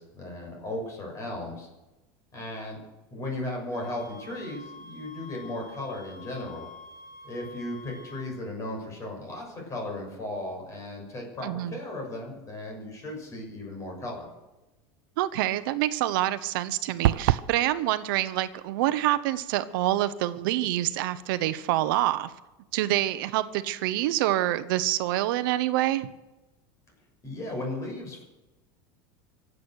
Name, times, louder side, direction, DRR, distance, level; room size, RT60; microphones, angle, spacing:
voice 1, 0.0-1.7 2.3-2.8 3.1-6.7 7.2-14.3 27.2-28.2, left 1 dB, 25° left, 0 dB, 6.8 m, -36 dB
sound 1, 3.7-8.3, left 3 dB, 60° left, 4.3 m, -47 dB
voice 2, 11.4-11.8 15.2-22.3 22.7-26.1, right 14 dB, 75° right, 13 dB, 1.1 m, -26 dB
sound 2, 17.0-17.5, right 14 dB, 90° right, 0.6 m, -22 dB
24.0 x 8.6 x 6.5 m, 1.1 s
supercardioid pair, 145°, 11 cm